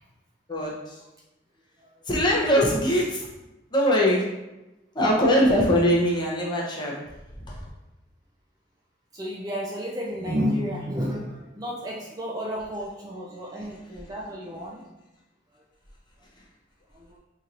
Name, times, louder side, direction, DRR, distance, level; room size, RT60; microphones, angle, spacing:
voice 1, 0.5-1.0 2.1-3.3 3.7-4.3 4.9-7.0 7.5-7.6, equal, 25° left, -3 dB, 0.7 m, -22 dB
voice 2, 9.1-14.8 16.9-17.2, equal, 20° right, -3 dB, 0.4 m, -31 dB
4.5 x 2.8 x 2.5 m, 1.0 s
head